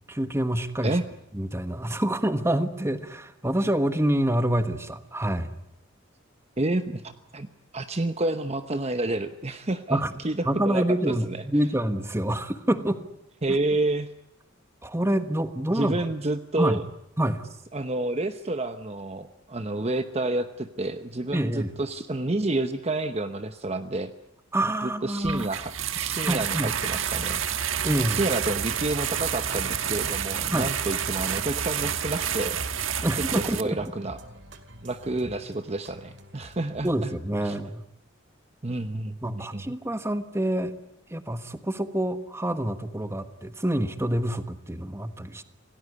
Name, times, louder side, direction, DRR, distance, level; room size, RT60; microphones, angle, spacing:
voice 1, 0.1-1.0 1.3-5.5 9.9-10.1 10.4-13.0 14.8-16.0 16.6-16.8 17.2-17.4 21.3-21.7 24.5-25.5 26.2-26.7 27.8-28.2 30.5-30.7 33.0-33.8 36.8-37.8 39.2-40.7 41.1-45.4, right 1 dB, 15° right, 10 dB, 1.3 m, -27 dB
voice 2, 6.6-7.5 7.7-11.1 13.4-14.1 15.7-16.8 17.7-24.1 24.8-27.4 28.1-32.6 33.3-34.2 34.8-37.1 37.4-37.6 38.6-39.7, right 2 dB, 30° right, 9 dB, 0.9 m, -29 dB
sound 1, 25.2-33.6, right 8 dB, 75° right, 1.4 m, -29 dB
sound 2, 27.3-37.0, equal, 60° right, 2.3 m, -47 dB
27.0 x 18.5 x 9.5 m, 0.79 s
head